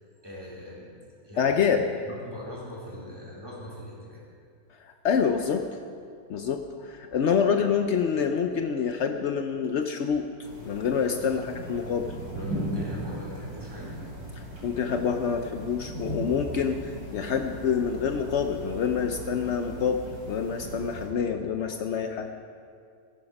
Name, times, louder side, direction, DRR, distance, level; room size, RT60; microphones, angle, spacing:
voice 1, 0.2-0.9 1.2-1.7 2.1-4.2 11.1-11.5 12.3-13.9, left 1 dB, 10° right, -5 dB, 3.6 m, -41 dB
voice 2, 1.4-1.8 5.0-5.6 6.3-10.2 10.6-12.2 14.6-20.0 20.3-22.3, left 7 dB, 90° left, 6 dB, 0.6 m, -26 dB
sound 1, 10.4-21.1, right 1 dB, 55° right, 3.4 m, -38 dB
15.0 x 10.5 x 5.3 m, 2.3 s
omnidirectional pair, 2.0 m